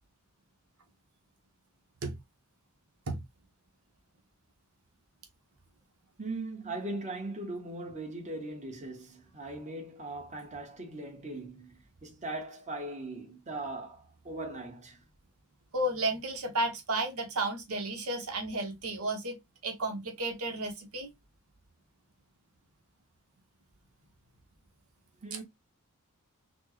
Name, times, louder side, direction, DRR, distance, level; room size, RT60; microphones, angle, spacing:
voice 1, 6.2-15.0 25.2-25.4, right 2 dB, 35° right, 1.0 m, -39 dB
voice 2, 15.7-19.4 19.6-21.1 25.3-25.4, right 2 dB, 75° right, 0.9 m, -33 dB
4.2 x 2.1 x 3.0 m
head